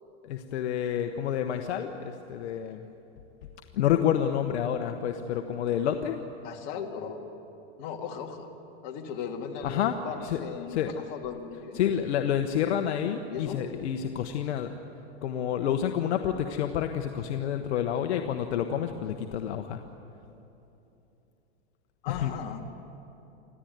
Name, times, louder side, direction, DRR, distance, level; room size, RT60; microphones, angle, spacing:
voice 1, 0.2-2.9 3.7-6.2 9.6-10.0 10.2-10.4 10.7-10.9 11.7-14.7 15.2-19.8 22.1-22.3, left 9 dB, 80° left, 6 dB, 1.2 m, -29 dB
voice 2, 6.4-7.2 7.8-8.5 8.8-11.8 13.3-13.6 22.0-22.6, left 7 dB, 55° left, 2 dB, 2.8 m, -37 dB
26.0 x 15.0 x 9.4 m, 2.9 s
supercardioid pair, 130°, 33 cm